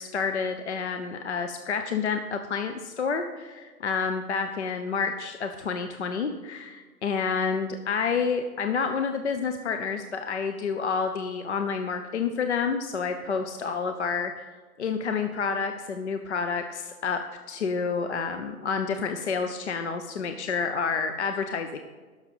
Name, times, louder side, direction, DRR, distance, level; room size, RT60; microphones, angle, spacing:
voice 1, 0.0-14.4 14.8-17.2 17.5-21.8, left 5 dB, 50° left, 6 dB, 0.7 m, -29 dB
11.0 x 6.5 x 5.5 m, 1.4 s
figure-of-eight pair, 135°, 46 cm